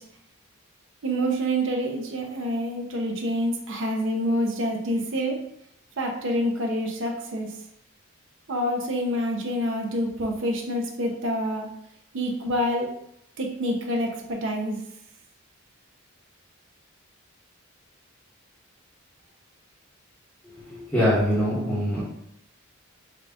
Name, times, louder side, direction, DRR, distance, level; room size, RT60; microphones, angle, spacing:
voice 1, 1.0-5.4 6.0-7.5 8.5-11.7 12.1-12.9 13.4-14.8, equal, 60° right, 0 dB, 0.6 m, -27 dB
voice 2, 20.7-22.0, equal, 10° left, -12 dB, 1.0 m, -23 dB
3.7 x 2.4 x 3.4 m, 0.74 s
head